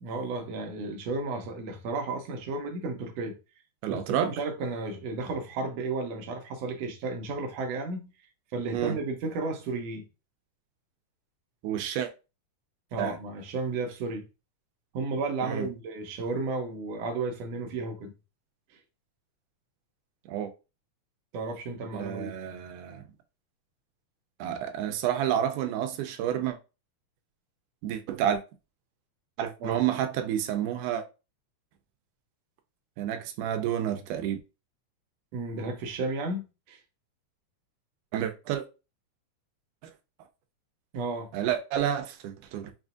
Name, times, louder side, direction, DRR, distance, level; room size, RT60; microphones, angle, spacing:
voice 1, 0.0-3.4 3.9-8.1 8.5-10.0 12.9-14.2 14.9-18.1 21.3-22.3 29.6-29.8 35.3-36.8 40.9-41.3, right 3 dB, 70° right, 1.7 m, -33 dB
voice 2, 3.8-4.3 8.7-9.0 11.6-12.1 13.0-13.2 15.4-15.7 20.3-20.5 21.9-23.1 24.4-26.6 27.8-28.4 29.4-31.0 33.0-34.4 38.1-38.6 41.3-42.7, right 10 dB, 90° right, 2.1 m, -29 dB
5.5 x 2.5 x 2.4 m
omnidirectional pair, 3.5 m